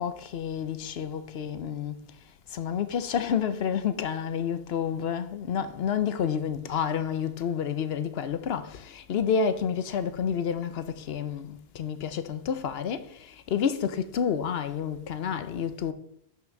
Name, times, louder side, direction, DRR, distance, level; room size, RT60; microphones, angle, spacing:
voice 1, 0.0-2.0 2.5-15.9, left 7 dB, 70° left, 0.9 m, -29 dB
5.9 x 5.8 x 6.4 m
omnidirectional pair, 1.1 m